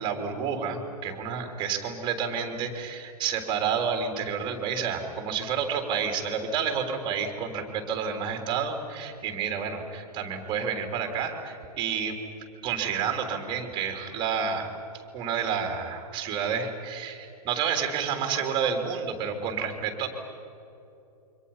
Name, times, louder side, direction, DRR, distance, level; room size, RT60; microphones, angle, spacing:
voice 1, 0.0-12.2 12.6-14.7 15.1-20.1, right 7 dB, 25° right, 5 dB, 3.3 m, -30 dB
29.0 x 25.0 x 5.6 m, 2.9 s
figure-of-eight pair, 115°, 20 cm